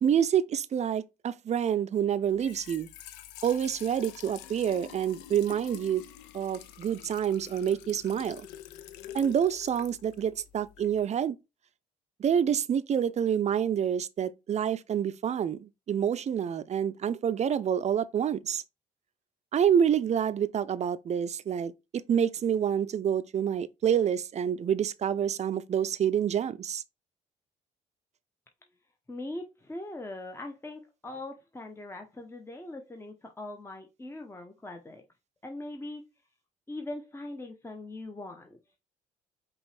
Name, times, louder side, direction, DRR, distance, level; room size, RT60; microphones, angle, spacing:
voice 1, 0.0-2.9 3.4-6.0 6.3-8.5 9.1-11.4 12.2-18.6 19.5-26.8, right 8 dB, 40° right, 0.5 m, -27 dB
Trickle dribble / Fill (with liquid), 2.3-11.0, left 11 dB, 80° left, 0.5 m, -47 dB
voice 2, 29.1-35.0 35.4-36.0 36.7-38.6, left 2 dB, 15° left, 0.8 m, -41 dB
5.1 x 3.0 x 3.3 m
hypercardioid pair, 55°, 17 cm